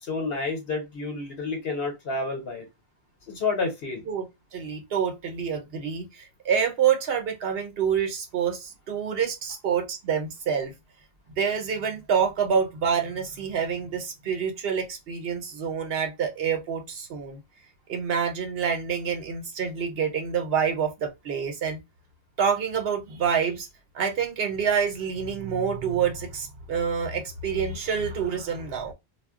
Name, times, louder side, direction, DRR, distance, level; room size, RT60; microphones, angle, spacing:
voice 1, 0.0-2.6 3.3-4.0, left 3 dB, 70° left, 1.0 m, -29 dB
voice 2, 4.5-10.7 11.3-17.4 17.9-21.8 22.4-23.7 23.9-28.9, right 7 dB, 70° right, 1.0 m, -27 dB
2.2 x 2.1 x 3.6 m
omnidirectional pair, 1.0 m